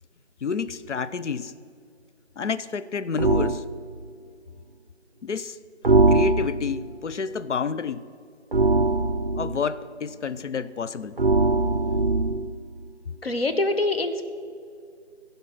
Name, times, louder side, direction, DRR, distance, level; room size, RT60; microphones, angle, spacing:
voice 1, 0.4-1.5 2.4-3.6 5.2-5.6 6.1-8.1 9.4-11.2, left 5 dB, 85° left, 0.6 m, -29 dB
sound 1, 3.2-3.6 5.8-6.8 8.5-9.6 11.2-12.5, right 2 dB, 55° right, 0.4 m, -21 dB
voice 2, 13.2-14.3, left 2 dB, 60° left, 0.9 m, -24 dB
15.0 x 5.4 x 6.0 m
figure-of-eight pair, 175°, 35 cm